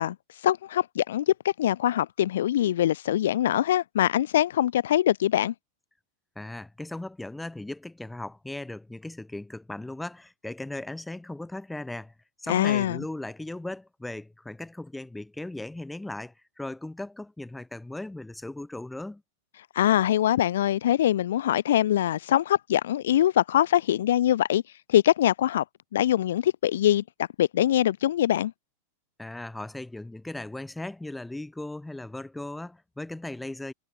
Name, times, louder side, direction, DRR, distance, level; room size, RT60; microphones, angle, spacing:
voice 1, 0.0-5.5 12.5-13.0 19.7-25.6 25.9-28.5, left 12 dB, 60° left, 0.6 m, -23 dB
voice 2, 6.3-12.1 12.4-19.2 29.2-33.7, left 2 dB, 5° left, 1.6 m, -37 dB
figure-of-eight pair, 90°, 0 cm